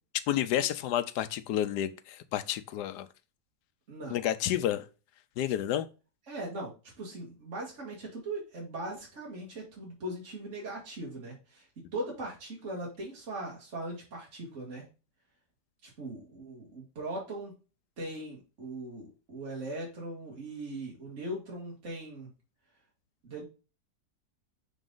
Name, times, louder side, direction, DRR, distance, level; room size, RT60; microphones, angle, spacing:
voice 1, 0.3-3.1 4.1-4.8 5.4-5.9, left 11 dB, 80° left, 1.2 m, -30 dB
voice 2, 3.9-4.2 6.3-11.7 11.9-14.8 15.8-17.5 18.0-22.3 23.2-23.4, right 1 dB, 45° right, 2.1 m, -39 dB
6.1 x 4.0 x 3.8 m
omnidirectional pair, 1.8 m